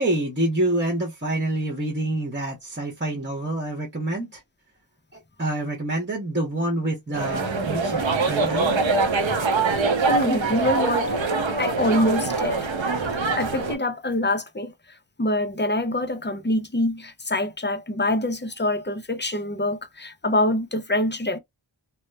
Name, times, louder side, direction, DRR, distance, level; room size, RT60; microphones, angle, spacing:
voice 1, 0.0-4.4 5.4-8.8, right 1 dB, 25° right, 0.9 m, -27 dB
sound 1, 7.1-13.8, right 3 dB, 85° right, 0.7 m, -24 dB
voice 2, 9.7-11.1 11.6-12.7 13.4-14.7 15.2-21.4, left 1 dB, 25° left, 0.5 m, -25 dB
2.9 x 2.0 x 2.2 m
wide cardioid pair, 40°, 45 cm